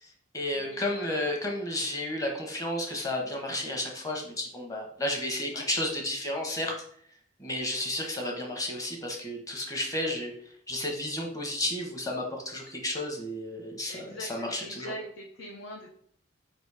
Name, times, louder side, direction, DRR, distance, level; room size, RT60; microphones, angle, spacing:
voice 1, 0.0-6.7 7.4-10.3 10.7-14.9, left 1 dB, 15° left, 1 dB, 1.1 m, -32 dB
voice 2, 0.5-1.3 5.5-5.7 13.9-16.0, equal, 65° left, 0 dB, 0.8 m, -42 dB
5.1 x 4.0 x 4.8 m, 0.62 s
head